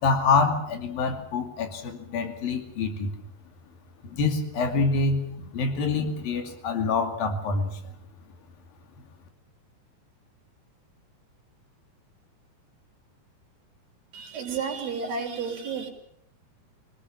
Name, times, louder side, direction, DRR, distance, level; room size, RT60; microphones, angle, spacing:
voice 1, 0.0-3.1 4.0-5.3 5.5-7.7, left 4 dB, 60° left, 6 dB, 4.1 m, -26 dB
voice 2, 14.1-15.9, right 5 dB, 70° right, 1 dB, 4.7 m, -31 dB
25.0 x 19.0 x 7.3 m, 0.74 s
omnidirectional pair, 4.9 m